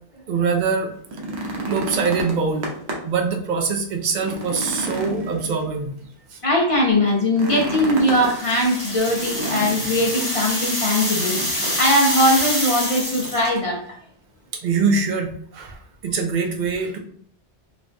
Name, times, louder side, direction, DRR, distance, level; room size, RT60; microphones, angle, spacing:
voice 1, 0.3-0.9 1.6-2.7 3.0-5.9 6.3-6.4 14.5-17.0, right 5 dB, 60° right, 4 dB, 0.5 m, -23 dB
sound 1, 1.0-3.2 3.6-3.7 4.1-6.0 7.3-8.3 9.2-10.2 11.3-12.0 12.2-12.4 13.0-13.5 14.7-14.8, right 1 dB, 75° right, 0.9 m, -30 dB
voice 2, 6.4-14.0, left 1 dB, 55° left, -1 dB, 0.3 m, -20 dB
sound 2, 8.0-13.6, equal, 30° left, 0.9 m, -26 dB
3.2 x 2.2 x 2.5 m, 0.62 s
omnidirectional pair, 1.1 m